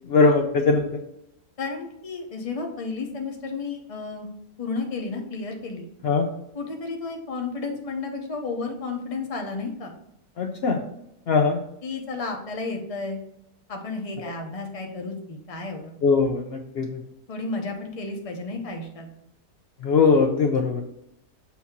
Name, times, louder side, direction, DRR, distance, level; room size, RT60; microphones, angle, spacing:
voice 1, 0.1-0.9 6.0-6.2 10.4-10.8 11.3-11.6 16.0-17.0 19.8-20.8, left 4 dB, 75° left, 2 dB, 0.5 m, -20 dB
voice 2, 1.6-4.3 4.6-5.9 6.5-9.9 11.8-13.2 13.7-15.9 17.3-19.1, left 3 dB, 30° left, 2 dB, 0.6 m, -32 dB
7.3 x 2.8 x 5.8 m, 0.78 s
omnidirectional pair, 1.8 m